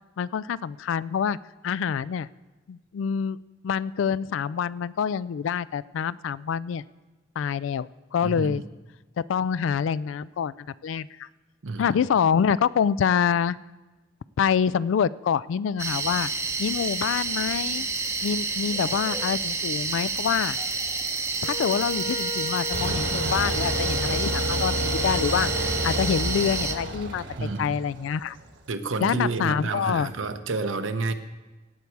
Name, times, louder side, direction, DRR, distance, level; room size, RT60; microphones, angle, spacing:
voice 1, 0.2-1.4 1.6-2.3 2.7-3.4 3.6-6.8 7.4-8.6 9.2-11.3 11.8-13.6 14.4-16.3 16.6-17.9 18.2-20.6 21.4-27.2 27.6-28.4 29.0-30.1, left 7 dB, 80° left, 19 dB, 0.3 m, -26 dB
voice 2, 8.2-8.6 11.6-11.9 27.4-27.8 28.7-31.1, right 3 dB, 90° right, 9 dB, 0.9 m, -29 dB
sound 1, 15.8-26.7, right 4 dB, 15° right, 0.7 m, -29 dB
Wind instrument woodwind instrument, 21.4-27.0, left 4 dB, 45° left, 1.1 m, -35 dB
sound 2, 22.7-28.5, right 1 dB, 65° right, 1.3 m, -30 dB
17.0 x 8.2 x 4.6 m, 1.2 s
head